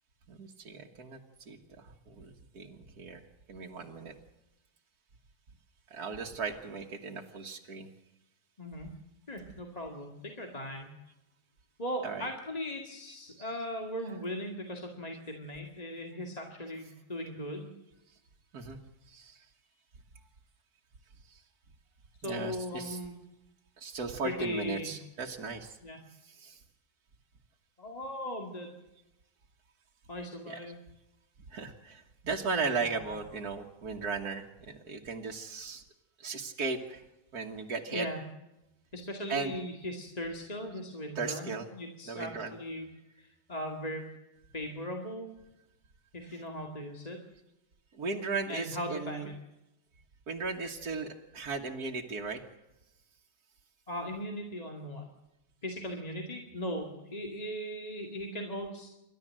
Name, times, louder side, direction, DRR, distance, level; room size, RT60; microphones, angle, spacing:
voice 1, 0.3-3.2 3.5-4.2 5.9-7.9 12.0-12.3 13.4-13.6 18.5-18.8 19.1-19.5 21.3-21.4 22.2-23.0 23.8-25.8 26.2-26.6 30.5-30.7 31.5-35.8 36.2-37.0 37.3-38.1 39.3-39.6 41.2-41.7 42.0-42.6 46.3-46.4 48.0-49.3 50.3-52.4, right 4 dB, 85° right, 0 dB, 2.0 m, -37 dB
voice 2, 8.6-8.9 9.3-10.9 11.8-17.7 22.2-23.1 24.2-25.0 25.8-26.0 27.8-28.7 30.1-30.8 32.5-33.2 37.9-38.2 38.9-42.9 43.2-44.0 44.5-45.3 46.1-47.2 48.5-49.4 53.9-55.1 55.6-58.9, equal, 25° left, 2 dB, 2.2 m, -38 dB
28.0 x 12.5 x 7.6 m, 0.96 s
omnidirectional pair, 1.6 m